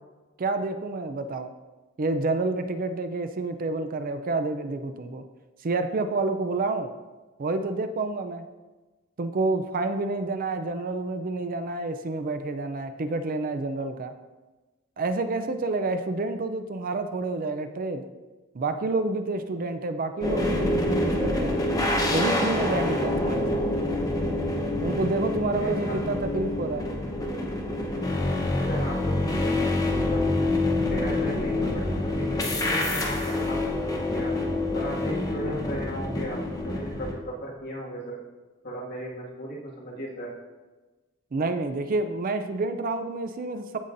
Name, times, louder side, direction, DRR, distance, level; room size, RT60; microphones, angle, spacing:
voice 1, 0.4-1.5 2.0-5.2 5.6-6.9 7.4-8.5 9.2-14.1 15.0-18.0 18.5-21.6 22.1-23.6 24.8-26.9 41.3-43.8, right 3 dB, 40° right, 8 dB, 0.4 m, -29 dB
sound 1, 20.2-37.1, left 1 dB, 15° left, 1.0 m, -26 dB
voice 2, 25.6-26.0 28.5-30.3 30.9-34.3 34.7-38.2 38.6-40.3, right 1 dB, 50° left, -4 dB, 2.0 m, -36 dB
15.0 x 5.5 x 2.6 m, 1.2 s
head